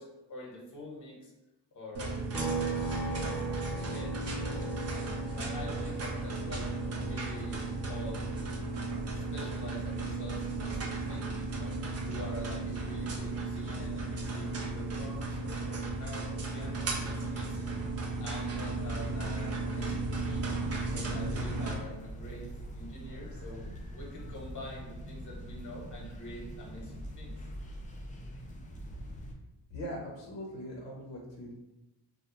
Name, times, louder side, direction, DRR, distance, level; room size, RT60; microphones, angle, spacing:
voice 1, 0.0-1.3 1.7-6.7 7.0-8.2 9.1-11.7 12.0-17.8 18.2-20.6 20.9-22.5 22.7-23.7 23.9-27.3, left 1 dB, 45° left, -2 dB, 1.0 m, -46 dB
sound 1, 1.9-21.7, right 2 dB, 35° right, 0.5 m, -35 dB
sound 2, 2.3-15.9 16.2-18.4, right 3 dB, ahead, 0.7 m, -42 dB
sound 3, 20.7-29.3, equal, 20° left, 0.4 m, -44 dB
voice 2, 29.7-31.5, equal, 80° left, -3 dB, 0.7 m, -41 dB
2.3 x 2.1 x 2.9 m, 0.98 s
cardioid pair, 80°, 43 cm